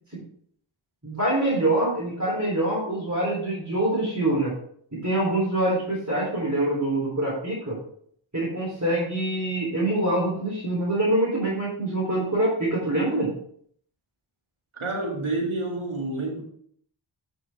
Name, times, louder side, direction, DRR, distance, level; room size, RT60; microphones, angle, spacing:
voice 1, 1.0-4.5 4.9-7.8 8.3-13.3, right 1 dB, 35° right, -4 dB, 3.4 m, -25 dB
voice 2, 14.7-16.4, right 2 dB, 75° right, -1 dB, 2.3 m, -29 dB
9.5 x 6.2 x 3.4 m, 0.62 s
wide cardioid pair, 45°, 49 cm